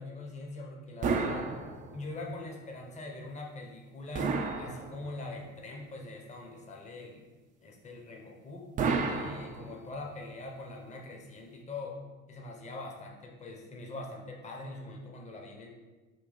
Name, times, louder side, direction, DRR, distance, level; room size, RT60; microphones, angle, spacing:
voice 1, 0.0-1.5 1.9-7.2 7.6-8.7 9.0-12.0 12.3-15.7, left 2 dB, 15° left, 1 dB, 0.7 m, -43 dB
sound 1, 1.0-2.2 4.1-5.4 8.8-10.1, right 4 dB, 20° right, 0.3 m, -32 dB
3.8 x 2.7 x 3.9 m, 1.2 s
figure-of-eight pair, 70°, 42 cm